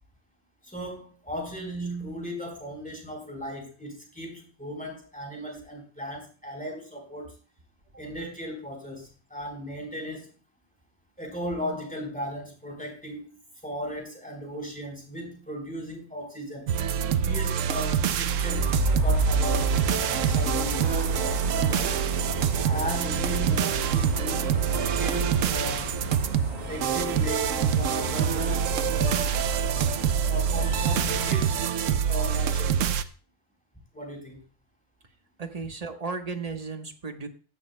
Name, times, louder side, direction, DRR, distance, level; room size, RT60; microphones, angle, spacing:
voice 1, 0.6-7.3 8.0-10.3 11.2-13.4 13.6-16.7 17.2-18.7 19.0-22.0 22.6-25.9 26.7-32.8 33.9-34.4, equal, 5° left, 1 dB, 4.3 m, -37 dB
sound 1, 16.7-33.0, right 8 dB, 75° right, 1.0 m, -26 dB
sound 2, 18.4-31.3, left 3 dB, 60° right, 5.6 m, -33 dB
voice 2, 35.4-37.3, right 4 dB, 30° right, 6 dB, 1.1 m, -34 dB
15.5 x 12.0 x 2.2 m, 0.37 s
omnidirectional pair, 1.3 m